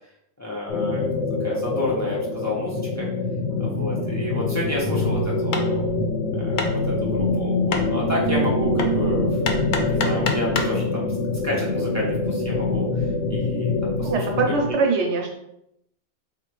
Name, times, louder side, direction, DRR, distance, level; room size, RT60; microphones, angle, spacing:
voice 1, 0.4-1.1 1.4-2.8 3.6-5.8 6.4-9.4 9.9-11.1 11.4-12.9 13.3-14.1 14.5-14.6, left 1 dB, 15° left, -6 dB, 0.8 m, -30 dB
sound 1, 0.7-14.7, left 2 dB, 90° left, 1.0 m, -24 dB
Hammer, 5.5-10.8, left 4 dB, 60° left, 0.5 m, -31 dB
voice 2, 14.0-15.3, right 4 dB, 80° right, 1 dB, 1.0 m, -23 dB
3.8 x 2.9 x 3.0 m, 0.78 s
omnidirectional pair, 1.2 m